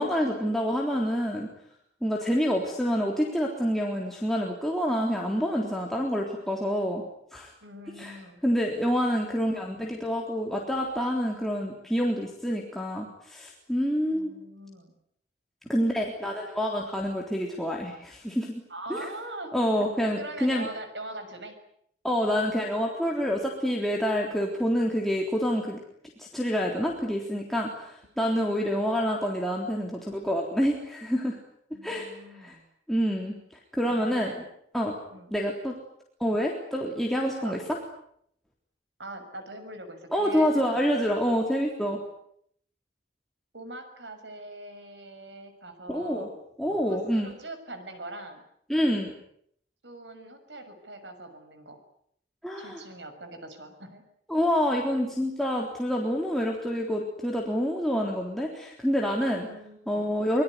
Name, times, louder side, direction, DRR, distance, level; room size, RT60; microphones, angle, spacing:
voice 1, 0.0-1.5 2.0-7.0 7.3-7.5 8.0-8.2 8.4-14.3 15.7-18.6 18.9-19.0 19.5-20.7 22.0-25.8 26.2-31.4 31.8-32.6 32.9-33.3 33.7-34.3 34.7-34.9 35.3-35.8 36.2-37.6 40.1-42.0 45.9-46.3 46.6-47.3 48.7-49.1 52.4-52.8 54.3-59.5 59.9-60.4, equal, ahead, -2 dB, 3.6 m, -27 dB
voice 2, 7.6-8.4 14.0-14.9 18.7-19.9 20.1-21.6 31.7-32.6 33.8-34.5 35.1-35.4 37.4-37.6 39.0-40.6 43.5-46.3 46.9-48.4 49.8-51.8 52.6-54.0 59.4-60.1, right 1 dB, 80° right, 7 dB, 6.5 m, -42 dB
25.0 x 22.5 x 9.7 m, 0.69 s
head